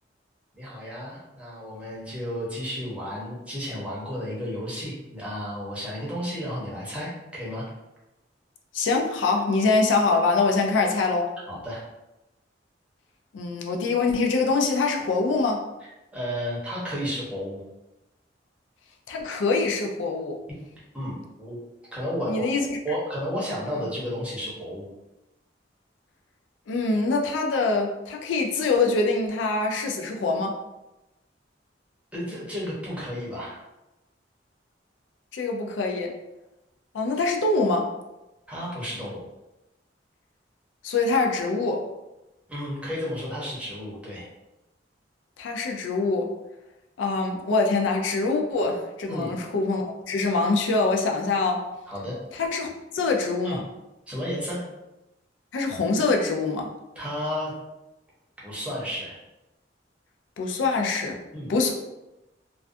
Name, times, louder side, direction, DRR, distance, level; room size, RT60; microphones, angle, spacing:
voice 1, 0.5-7.6 11.5-11.8 16.1-17.6 20.9-21.6 21.9-24.9 32.1-33.6 38.5-39.2 42.5-44.3 49.1-49.4 51.9-52.2 53.4-53.6 54.1-54.6 57.0-57.5 58.4-59.2 61.3-61.5, equal, 5° right, -6 dB, 0.7 m, -32 dB
voice 2, 8.7-11.3 13.3-15.6 19.1-20.4 22.3-22.8 26.7-30.6 35.3-36.1 36.9-37.9 40.8-41.8 45.4-46.3 47.0-51.7 52.3-53.6 55.5-56.7 60.4-61.2 61.5-61.7, left 3 dB, 85° left, 2 dB, 0.4 m, -24 dB
2.4 x 2.2 x 2.5 m, 0.97 s
head